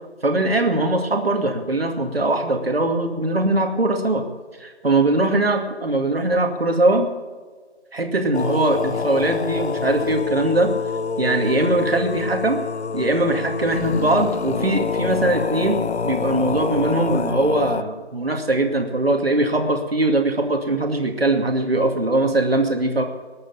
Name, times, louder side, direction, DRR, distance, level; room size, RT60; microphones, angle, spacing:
voice 1, 0.2-4.2 4.6-7.1 7.9-10.7 11.2-12.6 12.9-23.0, right 2 dB, 60° right, 4 dB, 2.4 m, -21 dB
sound 1, 8.3-17.8, left 5 dB, 75° left, 0.7 m, -26 dB
21.0 x 8.7 x 7.0 m, 1.4 s
figure-of-eight pair, 175°, 33 cm